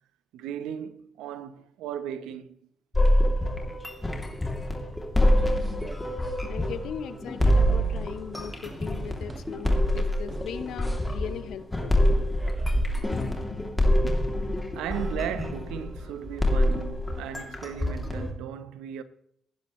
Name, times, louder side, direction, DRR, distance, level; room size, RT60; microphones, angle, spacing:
voice 1, 0.3-2.6 14.7-19.0, right 9 dB, 85° right, 1.1 m, -36 dB
sound 1, 2.9-18.3, equal, 15° left, 3.0 m, -26 dB
sound 2, 4.9-6.4 6.6-7.0 7.3-7.5 7.9-13.0, right 1 dB, 20° right, 2.1 m, -36 dB
voice 2, 6.5-11.9 14.0-14.1, left 8 dB, 75° left, 1.2 m, -38 dB
19.0 x 10.5 x 3.3 m
supercardioid pair, 70°, 0 cm